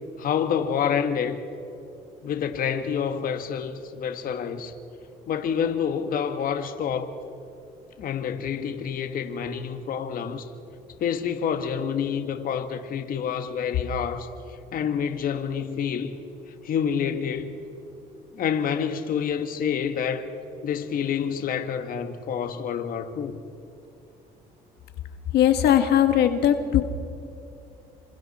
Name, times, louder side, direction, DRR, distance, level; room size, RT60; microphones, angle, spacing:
voice 1, 0.2-1.4 2.2-4.7 5.3-7.2 8.0-10.5 11.0-16.2 16.6-17.6 18.3-20.3 20.6-23.4, left 7 dB, 60° left, 1.6 m, -28 dB
voice 2, 25.3-26.8, left 10 dB, 75° left, 1.6 m, -19 dB
28.0 x 26.0 x 4.3 m
cardioid pair, 110°, 17 cm